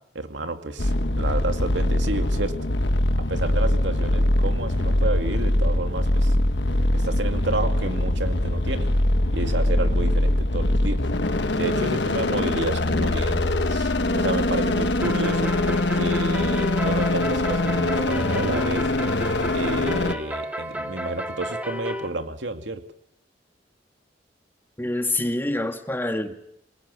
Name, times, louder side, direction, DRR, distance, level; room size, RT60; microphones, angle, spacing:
voice 1, 0.1-2.7 3.1-6.4 6.9-8.9 9.3-11.0 11.6-18.9 19.5-22.8, right 2 dB, 80° right, 6 dB, 2.4 m, -30 dB
sound 1, 0.8-20.1, left 1 dB, 70° left, 1.4 m, -23 dB
sound 2, 15.0-22.1, equal, 10° right, 2.3 m, -33 dB
voice 2, 24.8-26.3, left 1 dB, 10° left, 6 dB, 1.8 m, -26 dB
27.0 x 21.5 x 8.4 m, 0.74 s
head